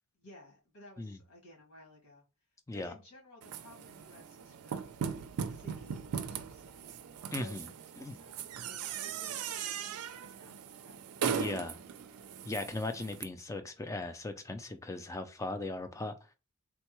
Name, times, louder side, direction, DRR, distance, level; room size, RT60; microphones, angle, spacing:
voice 1, 0.2-2.2 2.7-5.0 5.5-11.5, left 1 dB, 80° left, 1.7 m, -57 dB
sound 1, 3.4-13.2, right 7 dB, 75° right, 0.4 m, -39 dB
voice 2, 7.3-7.7 8.0-8.2 11.2-11.8 12.4-16.2, left 2 dB, 15° left, 0.3 m, -38 dB
3.4 x 2.2 x 2.9 m
head